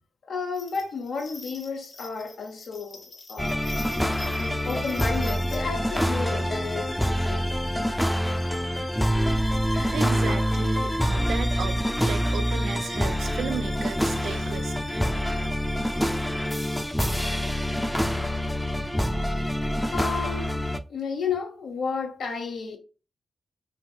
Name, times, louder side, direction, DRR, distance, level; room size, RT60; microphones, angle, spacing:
voice 1, 0.3-3.6 3.9-7.6 9.7-9.9 10.3-10.4 19.9-20.6 20.9-22.8, left 5 dB, 80° left, 0.7 m, -32 dB
sound 1, 0.5-5.6, left 3 dB, 55° left, 0.8 m, -45 dB
sound 2, 3.4-20.8, equal, 5° left, 0.4 m, -26 dB
voice 2, 9.9-14.8, right 7 dB, 85° right, 0.3 m, -34 dB
3.3 x 2.7 x 2.3 m
cardioid pair, 60°, 0 cm